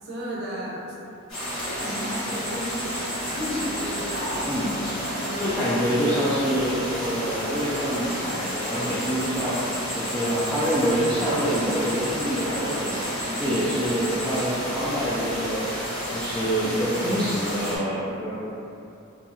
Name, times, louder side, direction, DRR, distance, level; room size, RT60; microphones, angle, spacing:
voice 1, 0.0-0.9 1.7-5.6 9.4-9.7 13.2-13.6, equal, 55° right, -5 dB, 0.6 m, -34 dB
sound 1, 1.3-17.8, equal, 85° left, 1.3 m, -31 dB
voice 2, 4.4-4.8 5.4-9.6 10.0-12.9 13.4-15.7 16.1-18.3, equal, 5° left, -12 dB, 0.3 m, -26 dB
2.6 x 2.3 x 2.7 m, 2.8 s
head